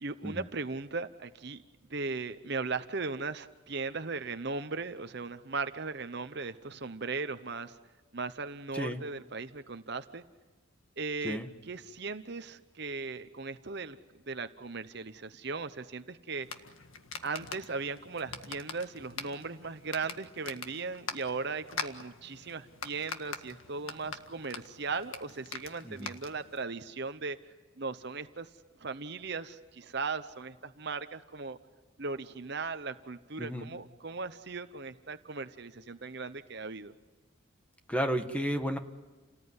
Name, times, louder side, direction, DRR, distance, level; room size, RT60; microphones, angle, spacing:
voice 1, 0.0-1.6 1.9-7.8 8.1-10.2 11.0-14.0 14.3-16.5 17.2-27.4 27.8-28.5 28.8-31.6 32.0-36.9, right 4 dB, 55° right, 10 dB, 0.9 m, -38 dB
sound 1, 16.4-26.6, left 5 dB, 75° left, 1.8 m, -44 dB
voice 2, 33.4-33.7 37.9-38.8, equal, 5° left, 6 dB, 1.5 m, -32 dB
30.0 x 19.0 x 9.7 m, 1.3 s
head